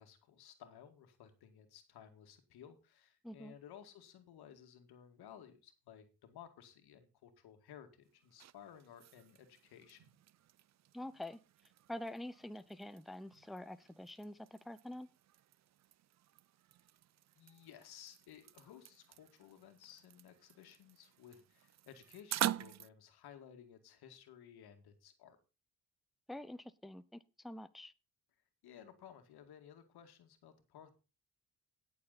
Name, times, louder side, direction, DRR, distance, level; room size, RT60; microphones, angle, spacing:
voice 1, 0.0-10.2 17.4-25.4 28.6-30.9, left 9 dB, 80° left, 7 dB, 2.1 m, -57 dB
sound 1, 8.0-22.9, right 12 dB, 45° right, 0.5 m, -46 dB
voice 2, 10.9-11.4 11.9-15.1 26.3-27.0 27.4-27.9, left 1 dB, ahead, 13 dB, 0.8 m, -46 dB
17.0 x 7.0 x 4.1 m, 0.31 s
supercardioid pair, 65°, 38 cm